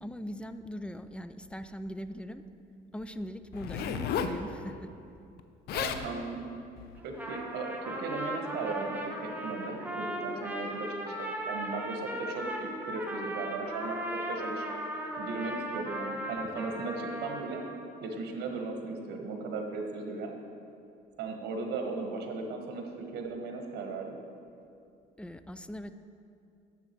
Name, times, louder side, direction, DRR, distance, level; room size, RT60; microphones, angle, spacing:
voice 1, 0.0-2.4 2.9-4.9 25.2-25.9, equal, 5° left, 11 dB, 0.3 m, -40 dB
Zipper (clothing), 3.5-4.4 5.4-5.5 5.7-6.1 6.8-7.0, left 7 dB, 70° left, 0.6 m, -33 dB
voice 2, 5.7-6.4 7.0-14.7 15.2-17.6 18.0-20.3 21.2-24.2, right 3 dB, 75° right, 3 dB, 1.4 m, -37 dB
Trumpet, 7.0-17.9, right 1 dB, 10° right, 1.1 m, -37 dB
9.9 x 7.0 x 4.5 m, 2.6 s
cardioid pair, 110°, 17 cm